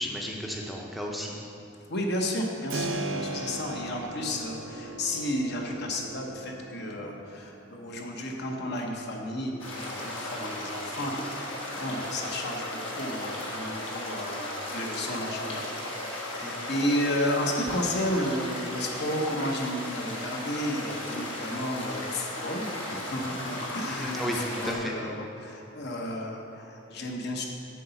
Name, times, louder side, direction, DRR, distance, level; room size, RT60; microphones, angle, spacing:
voice 1, 0.0-1.4 16.4-16.6 23.9-25.0, equal, ahead, -2 dB, 0.6 m, -33 dB
voice 2, 1.9-15.6 16.1-27.5, left 1 dB, 55° left, 1 dB, 0.9 m, -32 dB
Keyboard (musical), 2.7-13.4, right 2 dB, 80° right, 0.6 m, -40 dB
sound 1, 9.6-24.7, left 1 dB, 70° left, 1.4 m, -36 dB
8.3 x 3.9 x 6.9 m, 2.5 s
head